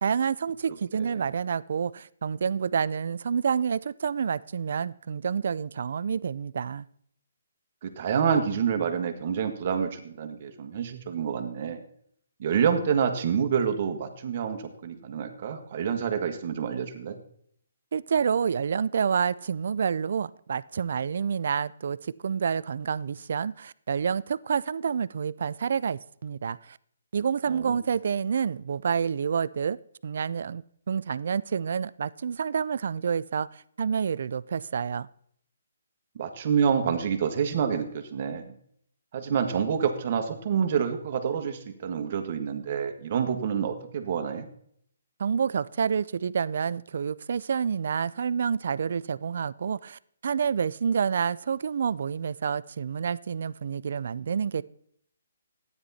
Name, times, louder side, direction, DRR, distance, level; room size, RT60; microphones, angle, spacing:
voice 1, 0.0-6.9 17.9-26.8 27.1-29.8 30.0-35.1 45.2-54.6, right 6 dB, 60° right, 0.4 m, -28 dB
voice 2, 0.9-1.3 7.8-11.8 12.4-17.2 27.5-27.8 36.1-38.5 39.1-44.5, right 7 dB, 45° right, 1.5 m, -28 dB
12.5 x 9.7 x 4.2 m
hypercardioid pair, 150°, 0 cm